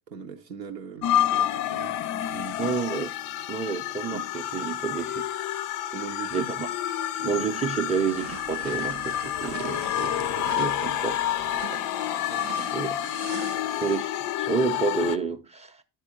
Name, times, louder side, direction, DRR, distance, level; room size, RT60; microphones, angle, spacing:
voice 1, 0.1-2.0 2.3-2.8 4.1-4.8 5.9-6.5 12.2-12.9 13.3-13.6, right 6 dB, 90° right, 0.8 m, -41 dB
sound 1, 1.0-15.2, left 11 dB, 40° left, 0.4 m, -29 dB
voice 2, 2.6-3.1 3.5-5.3 6.3-6.7 7.2-11.2 12.7-13.0 13.8-14.1 14.4-15.8, right 5 dB, 15° right, 0.5 m, -29 dB
sound 2, 8.1-14.0, right 12 dB, 60° right, 0.5 m, -41 dB
9.8 x 4.2 x 3.7 m
figure-of-eight pair, 60°, 49 cm